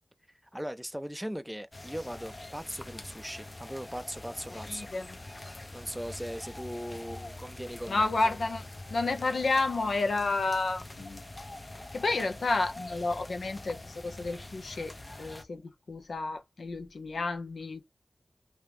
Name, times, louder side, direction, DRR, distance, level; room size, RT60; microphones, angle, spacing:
voice 1, 0.5-4.9 5.7-8.1, equal, 5° right, 0.5 m, -39 dB
sound 1, 1.7-15.4, left 2 dB, 35° left, 0.7 m, -45 dB
voice 2, 4.7-5.2 7.9-11.2 11.9-17.8, left 3 dB, 85° left, 0.8 m, -31 dB
3.0 x 2.7 x 3.4 m
wide cardioid pair, 60°, 0 cm